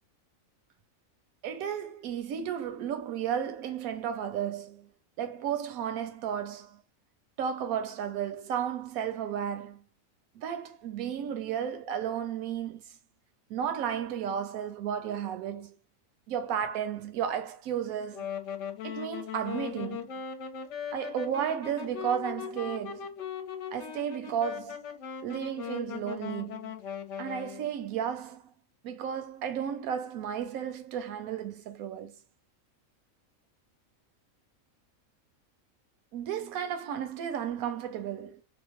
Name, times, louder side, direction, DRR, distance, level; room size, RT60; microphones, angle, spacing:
voice 1, 1.4-4.9 5.2-6.8 7.4-9.8 10.4-12.8 13.5-15.8 16.3-18.3 18.8-20.1 20.9-23.1 23.7-24.8 25.2-26.7 27.2-28.5 28.8-32.2 36.1-38.4, right 8 dB, 85° right, 1.1 m, -33 dB
Wind instrument woodwind instrument, 18.0-27.7, left 8 dB, 65° left, 0.9 m, -39 dB
2.8 x 2.0 x 2.9 m
omnidirectional pair, 1.4 m